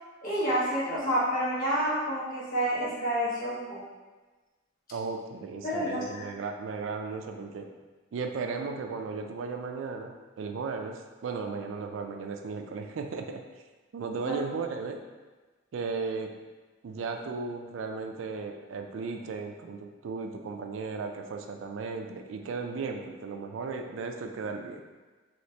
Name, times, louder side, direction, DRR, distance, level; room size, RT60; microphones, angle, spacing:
voice 1, 0.2-3.8 5.6-6.2 14.3-14.4, equal, 45° left, -8 dB, 1.1 m, -29 dB
voice 2, 4.9-7.7 8.1-13.4 13.9-15.0 15.7-16.4 16.8-24.8, right 4 dB, 75° right, 4 dB, 0.3 m, -35 dB
3.1 x 2.8 x 3.2 m, 1.3 s
head